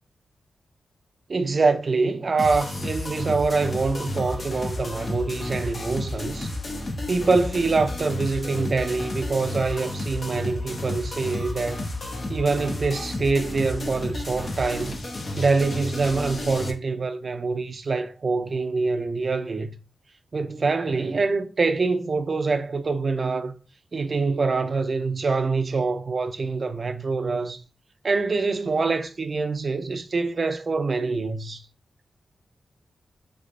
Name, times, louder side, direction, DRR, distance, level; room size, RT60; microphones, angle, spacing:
voice 1, 1.3-6.5 7.1-11.9 12.3-15.0 15.4-19.8 20.3-23.6 23.9-27.6 28.0-31.6, right 4 dB, 50° right, 0.4 m, -25 dB
sound 1, 2.4-16.7, left 1 dB, 50° left, 0.7 m, -32 dB
3.4 x 3.1 x 2.5 m
cardioid pair, 60°, 0 cm